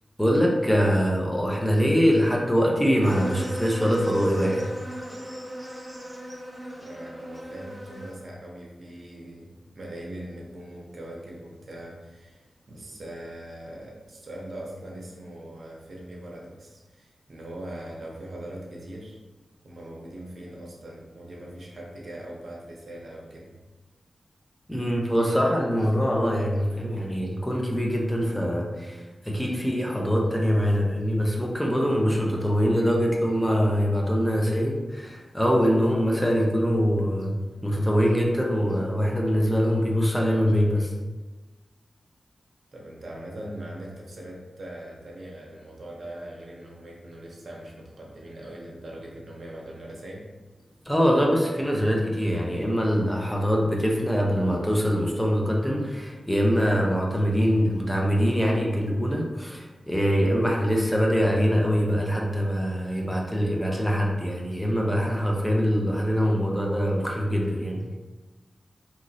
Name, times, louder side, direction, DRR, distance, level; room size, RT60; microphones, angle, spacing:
voice 1, 0.2-4.7 24.7-37.3 37.6-40.9 50.9-67.9, equal, 10° left, -2 dB, 0.6 m, -23 dB
sound 1, 3.0-8.1, equal, 15° right, 1.2 m, -37 dB
voice 2, 6.8-19.2 19.6-23.5 42.7-50.3, right 1 dB, 65° right, -2 dB, 0.6 m, -41 dB
2.9 x 2.8 x 2.6 m, 1.2 s
cardioid pair, 50°, 0 cm